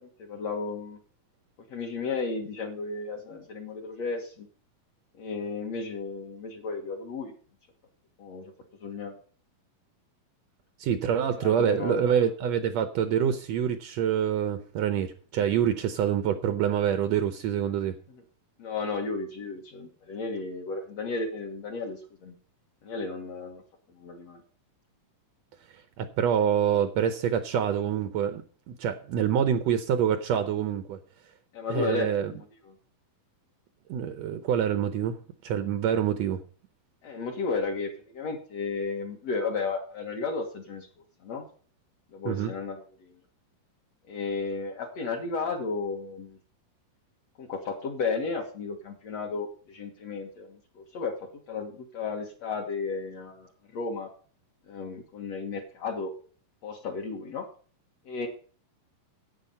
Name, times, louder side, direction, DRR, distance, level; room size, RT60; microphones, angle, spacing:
voice 1, 0.2-1.0 1.7-4.5 5.2-7.3 8.2-8.5 8.8-9.2 11.4-12.3 18.6-22.4 22.8-23.6 23.9-24.4 31.5-32.7 37.0-40.9 41.2-41.5 42.1-43.1 44.1-46.4 47.4-51.1 51.5-54.1 54.7-56.1 56.6-57.5 58.1-58.3, left 4 dB, 55° left, 2.3 m, -33 dB
voice 2, 10.8-17.9 25.7-28.4 28.7-31.0 31.7-32.3 33.9-35.2 35.4-36.4 42.2-42.5, right 9 dB, 75° right, 1.6 m, -26 dB
10.5 x 8.5 x 5.5 m
omnidirectional pair, 4.0 m